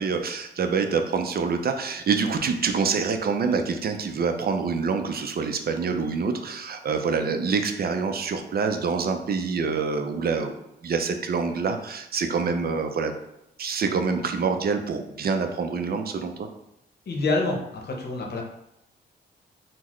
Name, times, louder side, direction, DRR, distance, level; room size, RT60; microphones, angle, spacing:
voice 1, 0.0-13.1 13.6-16.5, right 5 dB, 50° right, 6 dB, 0.5 m, -26 dB
voice 2, 17.1-18.4, left 3 dB, 55° left, 1 dB, 0.8 m, -27 dB
3.7 x 2.1 x 3.1 m, 0.86 s
supercardioid pair, 55°, 20 cm